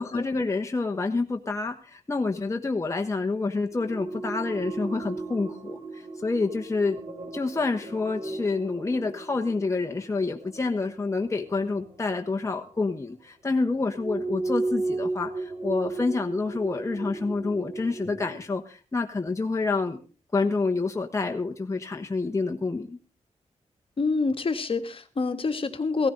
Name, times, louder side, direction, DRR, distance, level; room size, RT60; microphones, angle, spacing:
voice 1, 0.0-7.0 7.3-20.0 20.3-23.0, left 3 dB, 25° left, 3 dB, 1.2 m, -28 dB
sound 1, 3.7-12.9 13.9-18.4, right 2 dB, 55° right, 4.4 m, -35 dB
voice 2, 24.0-26.1, left 4 dB, 45° left, 8 dB, 1.6 m, -27 dB
17.0 x 14.5 x 3.9 m, 0.35 s
wide cardioid pair, 110°, 12 cm